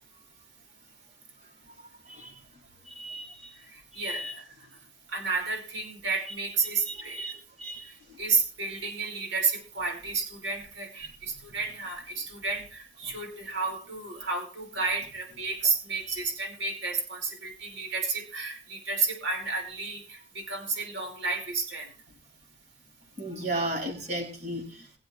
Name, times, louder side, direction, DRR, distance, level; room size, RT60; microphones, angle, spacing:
voice 1, 2.9-3.5 3.9-4.3 6.9-7.3 7.6-7.9 11.0-11.1 16.1-16.2 23.2-24.9, right 1 dB, 35° right, -2 dB, 6.2 m, -35 dB
voice 2, 4.0-4.4 5.1-7.2 8.2-21.9, right 4 dB, 70° right, 2 dB, 5.3 m, -31 dB
22.5 x 7.8 x 3.4 m, 0.38 s
head